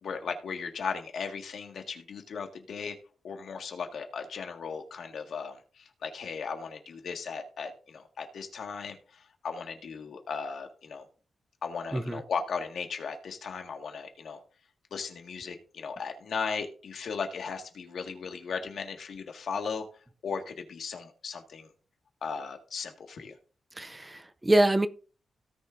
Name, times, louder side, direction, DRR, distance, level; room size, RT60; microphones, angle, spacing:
voice 1, 0.0-2.9 3.2-11.0 11.6-14.4 14.9-19.8 20.2-21.7 22.2-23.3, left 5 dB, 60° left, 1.7 m, -37 dB
voice 2, 11.9-12.2 23.7-24.9, right 1 dB, 10° right, 0.5 m, -25 dB
17.5 x 6.5 x 2.6 m
wide cardioid pair, 175°, 0 cm